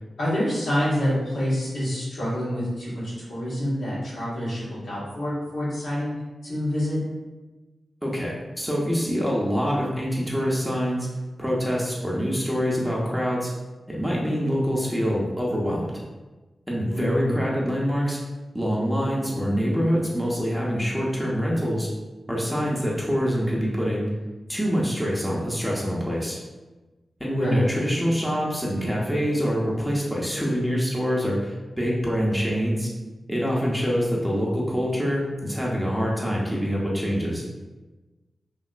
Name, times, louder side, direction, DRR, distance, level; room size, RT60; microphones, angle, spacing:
voice 1, 0.2-6.1 6.4-7.0 16.9-17.4 27.4-27.6, equal, 85° left, -9 dB, 1.4 m, -27 dB
voice 2, 8.0-11.1 11.4-13.5 13.9-15.9 16.7-18.2 18.5-21.9 22.3-24.1 24.5-26.4 27.2-32.9 33.3-37.4, equal, ahead, -5 dB, 0.8 m, -25 dB
3.0 x 2.7 x 2.5 m, 1.2 s
cardioid pair, 55°, 0 cm